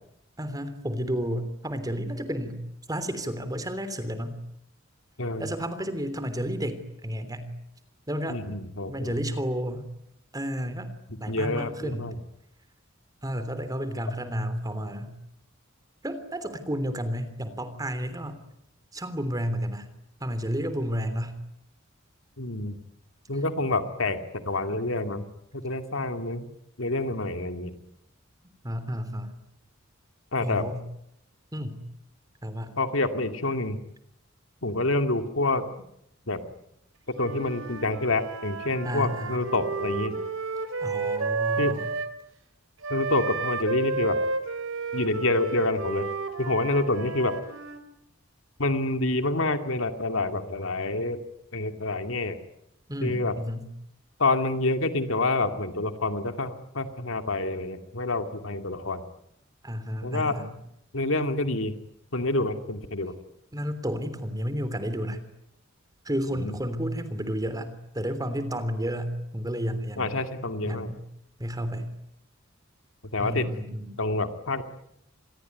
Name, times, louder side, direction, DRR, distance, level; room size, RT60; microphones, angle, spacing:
voice 1, 0.4-2.6 2.9-4.4 5.4-7.5 8.1-8.4 8.9-9.9 10.3-10.9 11.2-12.1 13.2-15.1 16.0-18.4 18.9-19.9 20.2-21.4 28.6-29.3 30.4-30.8 31.5-31.8 32.4-32.7 38.8-39.4 40.8-41.9 52.9-53.7 59.6-60.5 63.5-65.2 66.0-70.2 70.6-71.0 71.4-71.9 73.2-74.0, equal, 20° right, 12 dB, 3.2 m, -31 dB
voice 2, 5.2-5.5 8.3-9.1 11.1-12.1 22.4-22.8 23.3-25.3 25.5-26.5 26.8-27.7 30.3-30.7 32.8-33.8 34.6-35.7 36.3-36.4 37.2-40.2 41.6-41.8 42.9-44.2 44.9-46.1 46.4-47.4 48.6-51.2 51.5-52.4 53.0-53.4 54.2-59.0 60.0-60.4 60.9-61.7 62.1-63.1 66.3-66.6 70.0-70.9 73.1-73.5 74.0-74.6, left 2 dB, 75° left, 8 dB, 2.4 m, -27 dB
Wind instrument woodwind instrument, 37.1-42.1 42.8-47.8, right 4 dB, 75° right, 3.4 m, -32 dB
27.5 x 20.5 x 9.5 m, 0.81 s
head